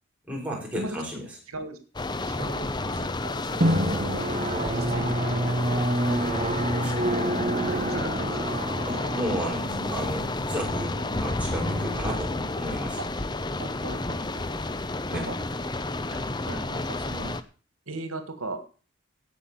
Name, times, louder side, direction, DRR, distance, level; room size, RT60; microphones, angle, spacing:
voice 1, 0.2-1.4 6.8-6.9 8.9-10.9 11.2-13.0 15.1-15.3 16.0-16.2, equal, 5° right, -2 dB, 5.7 m, -33 dB
voice 2, 1.5-1.8 2.3-4.2 4.7-6.2 6.6-7.1 7.5-8.5 13.0-13.1 13.6-14.4 15.1-15.3 16.5-17.4 17.9-18.6, right 2 dB, 90° right, 9 dB, 1.8 m, -38 dB
sound 1, 1.9-17.4, left 2 dB, 20° left, 0.7 m, -31 dB
Drum, 3.6-12.9, right 1 dB, 30° right, 1.5 m, -28 dB
17.0 x 6.0 x 7.2 m, 0.38 s
head